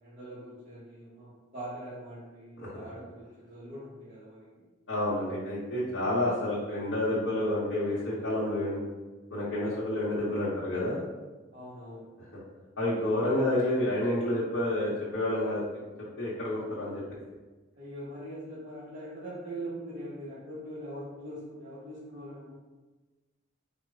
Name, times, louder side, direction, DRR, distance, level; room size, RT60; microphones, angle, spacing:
voice 1, 0.0-4.6 11.5-12.1 17.8-22.5, right 1 dB, 40° right, -11 dB, 1.1 m, -42 dB
voice 2, 4.9-8.8 9.3-11.0 12.8-15.6 16.2-17.0, left 1 dB, 85° left, -9 dB, 1.1 m, -29 dB
4.4 x 2.1 x 4.7 m, 1.2 s
head